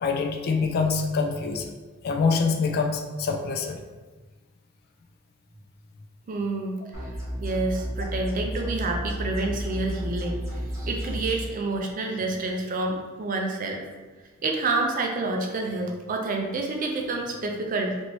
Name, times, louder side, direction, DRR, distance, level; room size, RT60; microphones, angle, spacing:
voice 1, 0.0-1.7 2.0-3.8, left 4 dB, 45° left, 4 dB, 0.3 m, -25 dB
voice 2, 6.3-7.1 7.4-13.8 14.4-18.0, right 2 dB, 40° right, 2 dB, 0.4 m, -28 dB
sound 1, 6.9-11.3, equal, 15° right, 0.9 m, -32 dB
3.0 x 2.6 x 3.0 m, 1.3 s
head